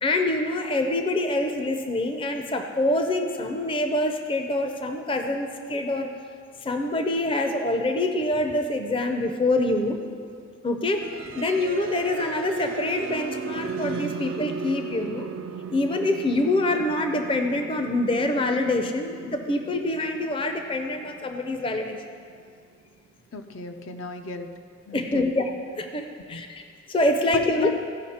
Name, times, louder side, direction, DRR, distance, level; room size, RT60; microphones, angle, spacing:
voice 1, 0.0-6.1 6.6-10.0 10.6-15.3 15.7-22.0 24.9-25.4 25.8-26.6 26.9-27.7, left 2 dB, 25° left, 5 dB, 0.5 m, -25 dB
sound 1, 11.0-22.9, right 5 dB, 80° right, 0.4 m, -37 dB
voice 2, 23.3-24.5 24.9-25.3 26.3-26.4 27.3-27.8, left 5 dB, 80° left, 6 dB, 0.6 m, -32 dB
15.0 x 5.3 x 4.3 m, 2.2 s
head